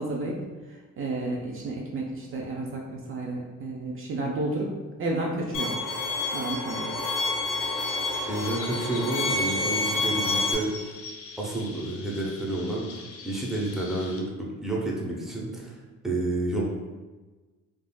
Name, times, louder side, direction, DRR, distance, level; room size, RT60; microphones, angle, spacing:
voice 1, 0.0-4.7 5.0-5.7 6.3-6.9, right 2 dB, 45° right, -1 dB, 0.5 m, -31 dB
Bowed string instrument, 5.5-10.5, left 2 dB, 85° left, 0.9 m, -28 dB
Chirp tweet, 7.6-14.2, left 4 dB, 50° left, 0.5 m, -43 dB
voice 2, 8.3-10.7 11.4-12.9 13.2-14.3 14.6-15.8 16.0-16.6, right 2 dB, ahead, -4 dB, 0.7 m, -30 dB
3.6 x 2.4 x 2.2 m, 1.3 s
cardioid pair, 90°, 30 cm